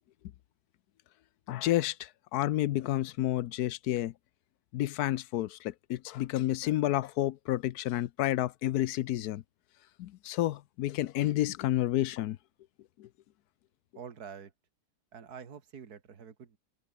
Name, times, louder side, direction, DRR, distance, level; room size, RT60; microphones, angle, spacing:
voice 1, 1.5-4.1 4.7-9.4 10.0-12.4 13.0-13.1, left 14 dB, 75° left, 1.1 m, -30 dB
voice 2, 13.9-14.5 15.1-16.6, right 7 dB, 70° right, 2.4 m, -46 dB
omnidirectional pair, 1.7 m